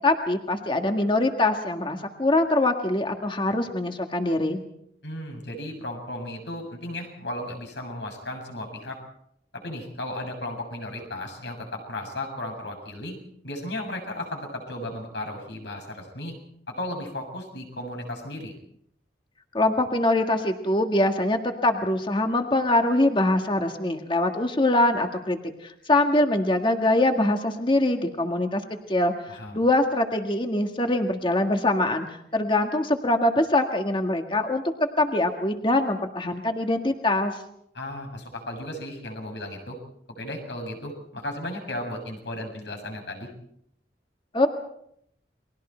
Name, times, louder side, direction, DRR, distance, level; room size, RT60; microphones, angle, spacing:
voice 1, 0.0-4.6 19.5-28.6 28.9-29.1 29.5-32.1 32.3-34.6 35.0-37.4 44.3-44.5, left 2 dB, 30° left, 5 dB, 1.8 m, -23 dB
voice 2, 5.0-9.0 9.5-13.2 13.4-16.3 16.7-18.5 29.3-29.6 37.7-39.8 40.2-43.3, left 1 dB, 75° left, 3 dB, 7.3 m, -35 dB
30.0 x 22.5 x 4.5 m, 0.72 s
head